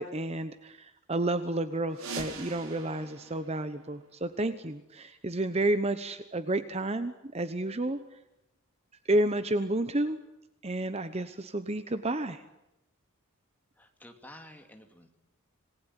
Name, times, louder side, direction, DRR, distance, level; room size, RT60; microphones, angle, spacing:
voice 1, 0.0-8.0 9.1-10.2 10.6-12.4, right 1 dB, 30° right, 11 dB, 1.0 m, -31 dB
sound 1, 1.9-4.5, right 4 dB, 70° right, 4.5 m, -43 dB
voice 2, 13.8-15.1, left 1 dB, 10° left, 4 dB, 2.5 m, -51 dB
27.0 x 20.0 x 9.9 m, 0.90 s
head